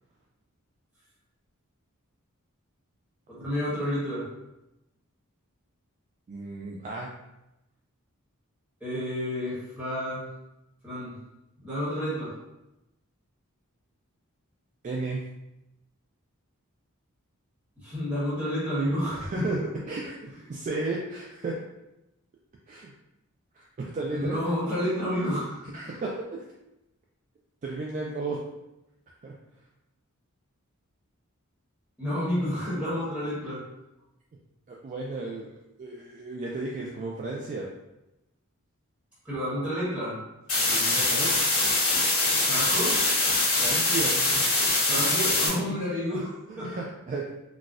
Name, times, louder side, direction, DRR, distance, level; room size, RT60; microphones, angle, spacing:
voice 1, 3.3-4.3 8.8-10.2 10.8-11.1 11.6-12.3 17.8-19.7 24.1-26.0 32.0-33.6 39.2-40.2 42.5-43.0 44.8-46.8, equal, 5° right, -10 dB, 1.2 m, -30 dB
voice 2, 6.3-7.1 14.8-15.2 19.2-19.6 19.9-21.6 22.7-22.9 23.5-24.4 25.7-26.4 27.6-28.4 29.2-29.3 34.7-35.5 35.8-37.7 40.7-41.4 43.5-45.0 46.1-46.2 46.5-47.3, right 3 dB, 35° right, -2 dB, 0.3 m, -34 dB
sound 1, 40.5-45.5, left 2 dB, 75° left, 1.3 m, -23 dB
4.0 x 2.3 x 2.4 m, 0.93 s
head